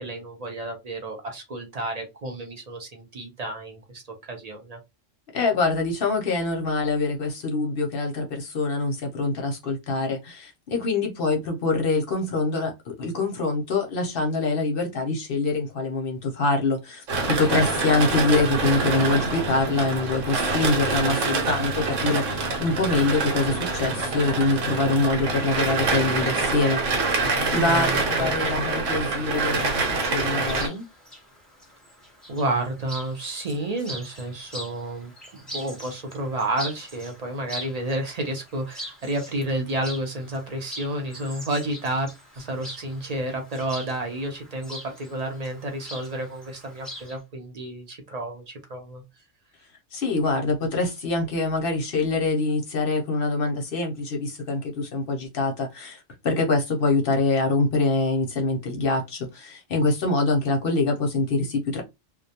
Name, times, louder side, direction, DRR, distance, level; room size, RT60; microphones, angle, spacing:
voice 1, 0.0-4.0 4.3-4.8 27.4-28.6 32.3-42.1 42.4-49.0, right 1 dB, 45° right, 0.5 m, -31 dB
voice 2, 5.3-30.8 49.9-61.8, left 3 dB, 55° left, 0.7 m, -25 dB
sound 1, 17.1-30.7, right 3 dB, 80° right, 1.1 m, -26 dB
Chirp tweet, 30.1-47.2, equal, ahead, 0.7 m, -42 dB
2.3 x 2.1 x 2.7 m
omnidirectional pair, 1.3 m